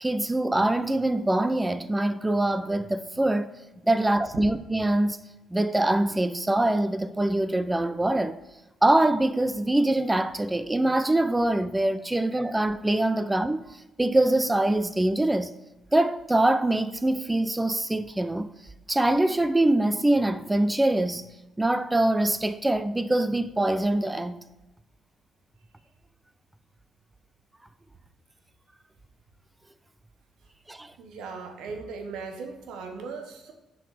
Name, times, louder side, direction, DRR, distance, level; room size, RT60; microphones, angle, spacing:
voice 1, 0.0-3.5 3.8-5.2 5.5-8.4 8.8-15.5 15.9-18.5 18.9-21.3 21.6-24.4 30.7-30.9, right 1 dB, 10° right, 0.4 m, -24 dB
voice 2, 31.0-33.5, right 4 dB, 85° right, 1.0 m, -38 dB
6.0 x 4.5 x 4.9 m
cardioid pair, 90°, 0 cm